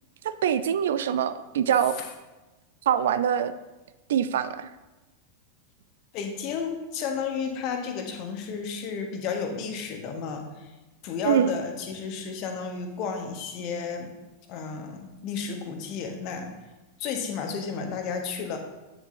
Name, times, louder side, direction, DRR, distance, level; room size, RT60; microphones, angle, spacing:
voice 1, 0.2-2.0 2.9-3.5 4.1-4.7 11.2-11.6, right 9 dB, 60° right, 12 dB, 0.4 m, -24 dB
voice 2, 6.1-10.7 11.0-14.1 14.5-16.5 17.0-18.6, left 6 dB, 40° left, 4 dB, 1.3 m, -32 dB
9.1 x 6.5 x 2.7 m, 1.1 s
figure-of-eight pair, 90°, 0 cm